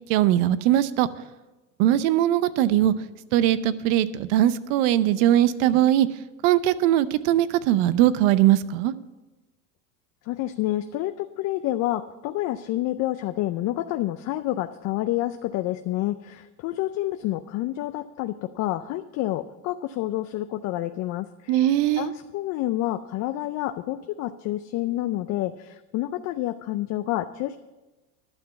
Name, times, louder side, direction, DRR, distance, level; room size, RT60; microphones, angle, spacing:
voice 1, 0.1-1.1 1.8-2.9 3.3-6.1 6.4-8.9 21.5-22.1, right 12 dB, 65° right, 16 dB, 0.7 m, -20 dB
voice 2, 10.2-21.7 22.0-27.6, left 15 dB, 40° left, 10 dB, 0.4 m, -28 dB
11.5 x 6.1 x 7.9 m, 1.1 s
supercardioid pair, 115°, 41 cm